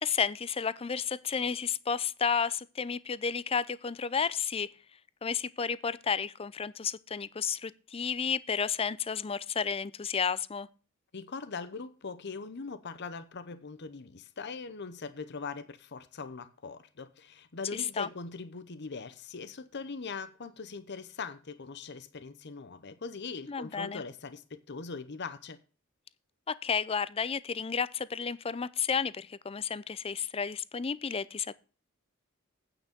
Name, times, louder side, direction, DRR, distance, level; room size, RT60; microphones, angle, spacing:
voice 1, 0.0-4.7 5.2-10.7 17.7-18.1 23.5-24.0 26.5-31.5, left 6 dB, 30° left, 0.5 m, -32 dB
voice 2, 11.1-25.6, left 4 dB, 55° left, 0.8 m, -41 dB
9.0 x 6.0 x 6.7 m
head